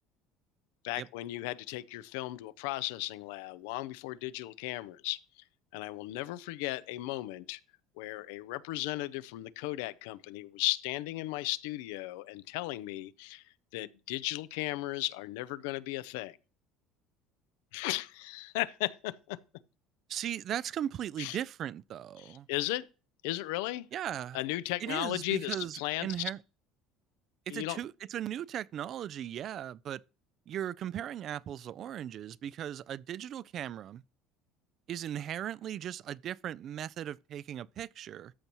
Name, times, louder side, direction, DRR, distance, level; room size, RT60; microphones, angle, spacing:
voice 1, 0.8-5.4 5.7-7.6 8.0-13.4 13.7-16.4 17.7-19.4 21.2-21.4 22.2-22.9 23.2-23.9 24.3-26.3 27.5-27.8, left 17 dB, 90° left, 0.5 m, -36 dB
voice 2, 20.1-22.5 23.9-24.4 24.8-26.4 27.5-30.0 30.5-34.0 34.9-38.3, right 10 dB, 45° right, 0.3 m, -38 dB
13.5 x 5.4 x 3.0 m
cardioid pair, 120°, 0 cm